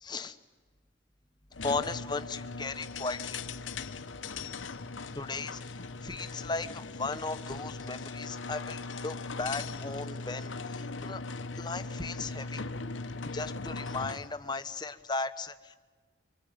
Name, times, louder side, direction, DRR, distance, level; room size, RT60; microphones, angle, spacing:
voice 1, 0.0-0.4 1.6-3.4 5.1-5.6 6.0-11.2 11.6-12.6 13.3-15.8, left 3 dB, 20° left, 10 dB, 1.0 m, -36 dB
sound 1, 1.5-14.3, left 3 dB, 85° left, 1.0 m, -39 dB
25.5 x 24.5 x 9.4 m, 1.5 s
head